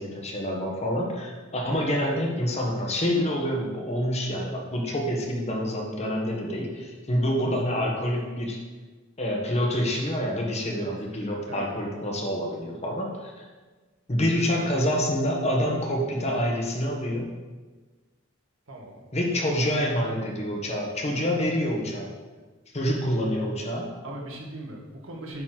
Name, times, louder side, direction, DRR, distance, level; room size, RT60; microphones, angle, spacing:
voice 1, 0.0-8.6 9.2-13.4 14.1-17.3 19.1-22.1 22.7-23.9, equal, 35° left, 0 dB, 1.4 m, -27 dB
voice 2, 18.7-19.0 19.4-19.5 24.0-25.4, right 1 dB, 90° right, 0 dB, 1.7 m, -39 dB
9.0 x 4.3 x 5.9 m, 1.3 s
head